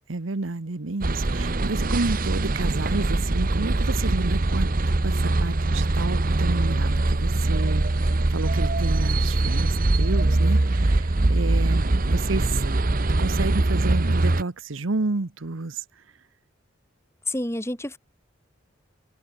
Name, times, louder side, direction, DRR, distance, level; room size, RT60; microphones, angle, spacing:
voice 1, 0.1-4.7 5.0-7.9 8.3-9.7 10.0-12.8 13.2-16.0, right 3 dB, 80° right, 1.0 m, -30 dB
sound 1, 1.0-14.4, right 2 dB, 45° right, 0.9 m, -22 dB
voice 2, 17.3-18.0, left 1 dB, 15° left, 3.0 m, -28 dB
head